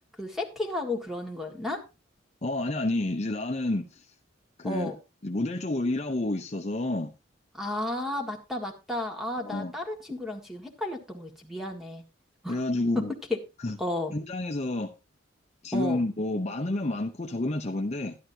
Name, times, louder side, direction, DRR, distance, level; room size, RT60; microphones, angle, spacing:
voice 1, 0.2-1.8 4.6-5.0 7.5-12.0 12.4-12.6 13.0-13.1 13.3-13.4 13.8-14.1 15.7-16.0, left 1 dB, ahead, 3 dB, 1.8 m, -32 dB
voice 2, 2.4-4.1 4.6-4.9 5.2-7.1 9.4-9.7 12.5-13.1 13.6-13.8 14.1-14.9 15.6-18.2, left 2 dB, 35° left, 4 dB, 0.7 m, -29 dB
12.5 x 11.0 x 2.7 m, 0.26 s
head